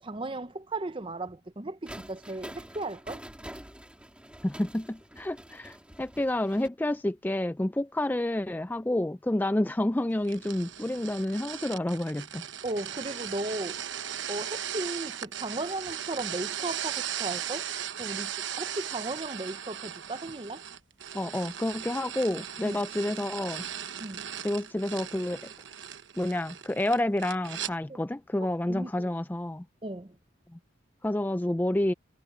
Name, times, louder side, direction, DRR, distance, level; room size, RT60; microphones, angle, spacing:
voice 1, 0.0-3.2 12.6-13.8 14.3-17.7 18.0-20.6 22.6-22.8 24.0-24.3 27.9-28.0 28.4-29.1 29.8-30.2, right 2 dB, 25° right, 0.8 m, -36 dB
sound 1, 1.9-6.7, right 1 dB, 5° right, 3.2 m, -46 dB
voice 2, 4.4-12.4 21.1-23.6 24.4-25.4 26.2-29.6 31.0-31.9, left 1 dB, 10° left, 0.3 m, -29 dB
sound 2, 10.2-27.7, right 9 dB, 70° right, 1.0 m, -38 dB
head